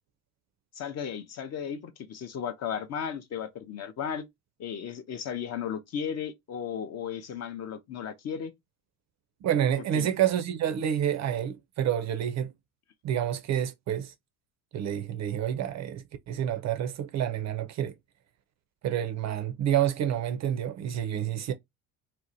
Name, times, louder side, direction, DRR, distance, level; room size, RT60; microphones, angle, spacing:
voice 1, 0.7-4.2 4.6-8.5 9.9-10.1, left 8 dB, 35° left, 0.4 m, -35 dB
voice 2, 9.4-12.5 13.0-14.1 14.7-17.9 18.8-21.5, right 10 dB, 40° right, 0.4 m, -28 dB
2.7 x 2.1 x 2.5 m
hypercardioid pair, 70°, 46 cm